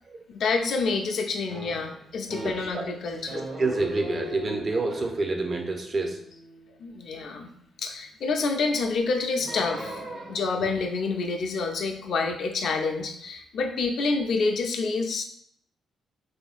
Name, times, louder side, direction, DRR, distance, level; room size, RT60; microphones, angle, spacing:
voice 1, 0.3-3.5 6.8-7.5 7.8-15.2, left 4 dB, 65° left, 4 dB, 0.4 m, -28 dB
sound 1, 1.5-2.9 3.3-7.6 9.4-10.7, right 1 dB, 70° right, 1.2 m, -40 dB
voice 2, 2.3-2.8 3.3-6.2 10.6-10.7, right 3 dB, 45° right, 3 dB, 0.6 m, -28 dB
3.2 x 2.5 x 2.4 m, 0.70 s
hypercardioid pair, 40°, 0 cm